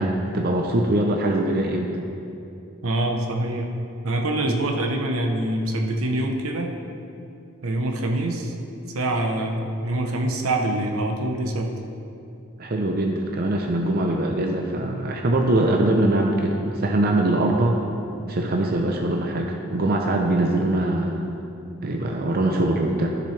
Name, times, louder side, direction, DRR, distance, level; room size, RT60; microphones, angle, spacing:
voice 1, 0.0-1.9 12.6-17.8 18.3-21.4 21.8-23.1, right 1 dB, 45° right, 1 dB, 0.6 m, -22 dB
voice 2, 2.8-3.7 4.0-6.8 7.6-8.5 8.9-11.7, right 1 dB, 75° right, 2 dB, 0.9 m, -25 dB
13.0 x 6.9 x 3.3 m, 2.7 s
head